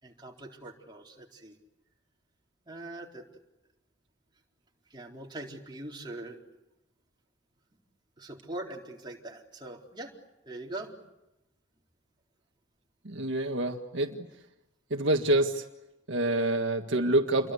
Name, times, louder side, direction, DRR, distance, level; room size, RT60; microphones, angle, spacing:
voice 1, 0.0-1.5 2.7-3.2 4.9-6.4 8.2-10.1 10.5-10.9, right 2 dB, 20° right, -1 dB, 4.1 m, -42 dB
voice 2, 13.0-14.3 14.9-15.6 16.1-17.5, right 1 dB, 70° right, 4 dB, 1.7 m, -27 dB
29.0 x 23.0 x 8.4 m, 0.93 s
head